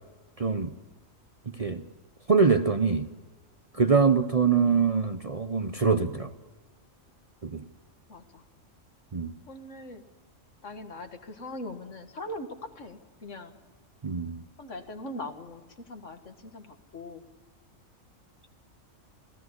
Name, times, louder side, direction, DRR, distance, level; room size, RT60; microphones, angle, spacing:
voice 1, 0.4-0.7 1.5-1.8 2.3-3.1 3.7-6.3 7.4-7.6 9.1-9.3 14.0-14.4, right 5 dB, 30° right, 9 dB, 0.8 m, -24 dB
voice 2, 8.1-8.4 9.5-10.0 10.6-12.5 12.8-13.5 14.6-17.2, left 1 dB, 65° left, 6 dB, 2.2 m, -41 dB
27.0 x 17.0 x 8.1 m, 1.3 s
omnidirectional pair, 1.4 m